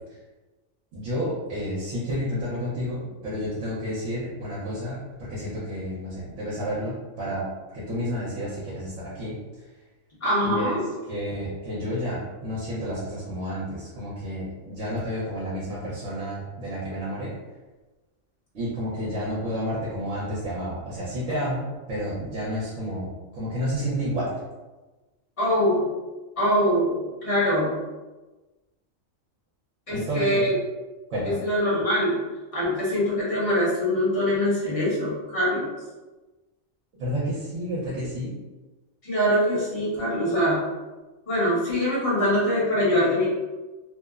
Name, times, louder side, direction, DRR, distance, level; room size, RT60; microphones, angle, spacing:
voice 1, 0.9-9.4 10.4-10.8 11.1-17.3 18.5-24.4 29.9-30.5 31.1-31.4 37.0-38.3, equal, 70° right, -7 dB, 1.0 m, -30 dB
voice 2, 10.2-10.8 25.4-25.9 26.4-27.7 29.9-30.5 31.2-32.2 32.5-35.7 39.0-40.6 41.3-43.3, equal, 30° left, -8 dB, 0.9 m, -23 dB
2.9 x 2.0 x 2.3 m, 1.2 s
omnidirectional pair, 1.4 m